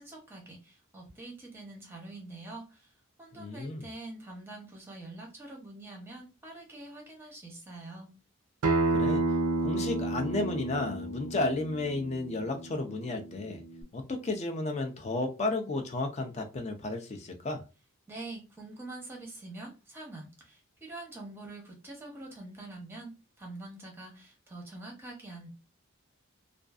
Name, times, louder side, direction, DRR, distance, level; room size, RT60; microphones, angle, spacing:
voice 1, 0.0-2.9 3.2-8.1 18.1-25.5, right 2 dB, 10° right, 0.7 m, -45 dB
voice 2, 3.3-3.9 8.9-9.2 9.6-13.6 13.9-17.6, left 2 dB, 30° left, 0.4 m, -33 dB
Acoustic guitar, 8.6-13.8, right 2 dB, 90° right, 0.4 m, -31 dB
2.5 x 2.3 x 2.4 m
head